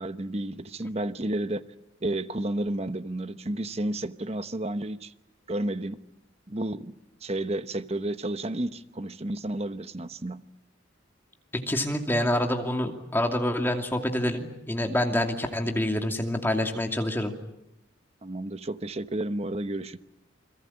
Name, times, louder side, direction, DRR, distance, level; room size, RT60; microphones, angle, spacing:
voice 1, 0.0-1.6 2.0-5.1 5.5-6.0 6.5-6.9 7.2-10.4 18.2-20.0, right 1 dB, 30° right, 1.0 m, -31 dB
voice 2, 11.5-17.3, left 1 dB, 10° left, 2.6 m, -27 dB
29.0 x 22.0 x 8.6 m
head